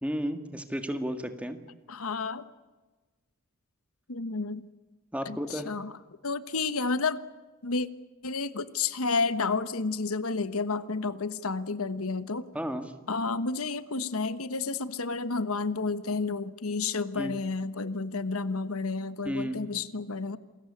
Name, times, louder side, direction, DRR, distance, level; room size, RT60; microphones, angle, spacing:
voice 1, 0.0-1.6 5.1-5.7 12.5-12.9 17.2-17.3 19.2-19.7, equal, 5° right, 7 dB, 1.8 m, -33 dB
voice 2, 1.9-2.5 4.1-4.7 5.2-5.9 6.2-7.2 7.6-7.9 8.2-12.5 13.1-20.4, left 4 dB, 85° left, 13 dB, 1.2 m, -31 dB
28.5 x 21.5 x 8.6 m, 1.3 s
head